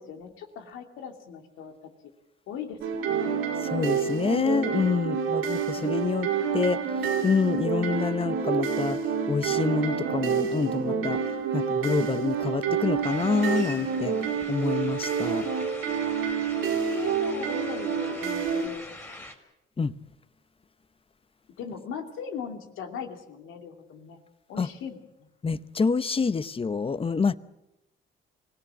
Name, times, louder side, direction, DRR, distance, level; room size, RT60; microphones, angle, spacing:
voice 1, 0.0-1.7 2.5-3.3 5.7-6.0 16.5-19.2 21.6-24.2 24.5-25.3, left 7 dB, 90° left, 2.7 m, -40 dB
sound 1, 2.8-18.7, right 6 dB, 85° right, 3.4 m, -28 dB
voice 2, 3.6-6.8 7.2-9.0 9.3-11.2 11.5-14.1 14.5-15.4 19.8-19.9 24.6-24.7 25.4-27.4, left 5 dB, 30° left, 0.9 m, -27 dB
sound 2, 13.0-19.3, left 1 dB, 10° left, 4.0 m, -44 dB
24.0 x 17.5 x 8.7 m
cardioid pair, 90°, 20 cm